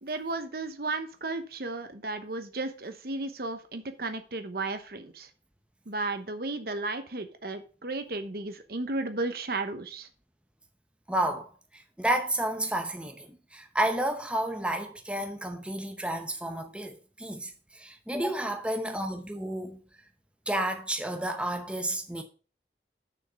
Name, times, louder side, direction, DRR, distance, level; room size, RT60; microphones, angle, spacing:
voice 1, 0.0-5.3 5.9-10.1, right 2 dB, 55° right, 1.0 m, -34 dB
voice 2, 11.1-19.8 20.5-22.2, right 1 dB, 5° right, 0.8 m, -31 dB
6.6 x 6.5 x 5.2 m
head